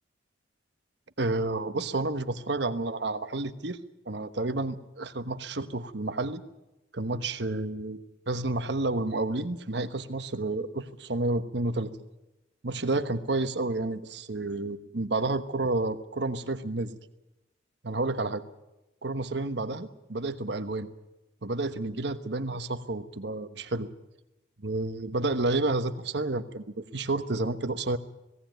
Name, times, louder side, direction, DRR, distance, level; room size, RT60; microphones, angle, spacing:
voice 1, 1.2-3.8 4.1-6.4 6.9-8.0 8.3-11.9 12.6-17.0 17.8-18.4 19.0-20.9 21.4-23.9 24.6-28.0, right 2 dB, 60° right, 10 dB, 1.2 m, -30 dB
18.5 x 17.0 x 9.2 m, 0.96 s
head